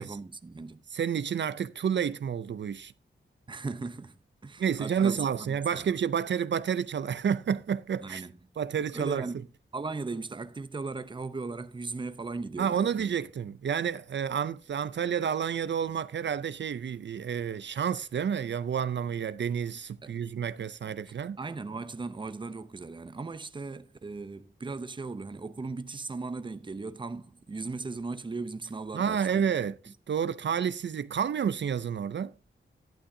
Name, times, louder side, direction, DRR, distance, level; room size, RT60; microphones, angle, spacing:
voice 1, 0.0-0.8 3.5-5.9 8.0-8.3 8.9-9.5 9.7-13.1 20.0-20.1 21.4-29.5, right 3 dB, 25° right, 0.6 m, -38 dB
voice 2, 0.9-2.9 4.6-8.2 8.6-9.3 12.6-21.4 28.9-29.8 30.1-32.3, right 7 dB, 65° right, 0.5 m, -30 dB
11.5 x 11.5 x 2.7 m
wide cardioid pair, 155°, 20 cm